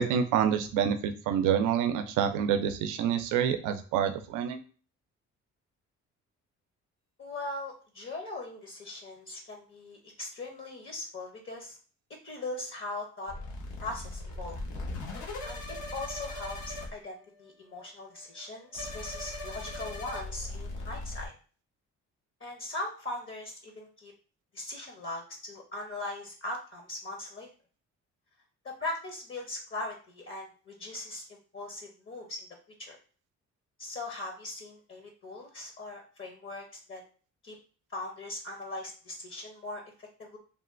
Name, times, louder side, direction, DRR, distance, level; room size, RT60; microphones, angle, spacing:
voice 1, 0.0-4.6, right 8 dB, 90° right, 8 dB, 0.5 m, -27 dB
voice 2, 7.2-11.8 12.2-13.3 13.8-14.6 15.4-15.6 15.9-21.3 22.4-24.1 24.5-27.5 28.6-32.5 32.8-33.0 33.8-37.0 37.4-37.6 37.9-40.4, left 2 dB, 40° left, 3 dB, 0.7 m, -40 dB
sound 1, 13.3-16.9 17.2-17.5 17.8-17.9 18.1-18.5 18.7-21.3, left 2 dB, 85° left, 1.1 m, -39 dB
3.5 x 2.2 x 2.5 m, 0.39 s
cardioid pair, 90°, 30 cm